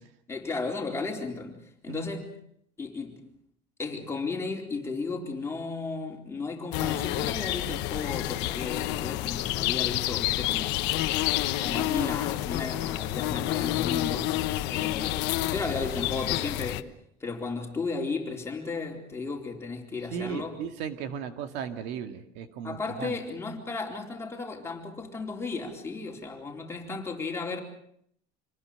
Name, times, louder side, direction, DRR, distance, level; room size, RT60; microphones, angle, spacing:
voice 1, 0.3-1.6 1.8-2.2 2.8-3.2 3.8-10.8 11.3-14.3 14.7-16.9 17.2-20.6 22.6-27.6, left 4 dB, 15° left, 4.1 m, -34 dB
sound 1, 6.7-16.8, left 16 dB, 75° left, 1.2 m, -29 dB
voice 2, 20.1-23.2, right 7 dB, 75° right, 2.2 m, -36 dB
27.0 x 20.0 x 6.6 m
cardioid pair, 155°, 18 cm